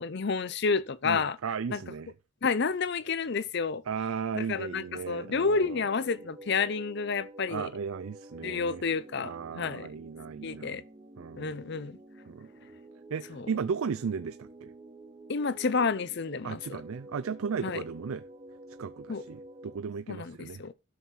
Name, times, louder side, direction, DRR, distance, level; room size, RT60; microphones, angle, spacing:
voice 1, 0.0-1.4 1.7-1.8 2.4-3.8 4.3-7.7 8.4-9.9 10.4-10.8 11.4-12.0 13.3-13.5 15.3-16.6 17.6-17.8 19.1-19.2 20.1-20.7, left 5 dB, 50° left, 0.6 m, -30 dB
voice 2, 1.0-2.1 3.9-5.8 7.5-8.8 9.2-10.8 11.2-11.5 12.3-12.5 13.1-14.7 16.4-18.2 18.8-20.6, right 6 dB, 75° right, 0.4 m, -35 dB
sound 1, 4.8-19.8, right 1 dB, 25° right, 1.1 m, -50 dB
12.5 x 6.3 x 4.1 m
head